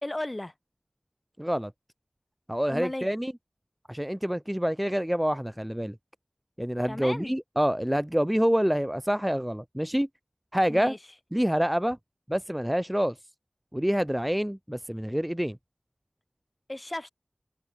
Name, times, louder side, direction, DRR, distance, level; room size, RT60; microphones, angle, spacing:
voice 1, 0.0-0.5 2.7-3.1 6.8-7.3 10.7-11.0 16.7-17.1, left 1 dB, 30° left, 3.2 m, -35 dB
voice 2, 1.4-1.7 2.5-3.3 3.9-5.9 6.6-10.1 10.5-10.9 11.3-12.0 12.3-13.1 13.7-15.6, equal, 10° right, 0.3 m, -27 dB
wide cardioid pair, 40°, 0 cm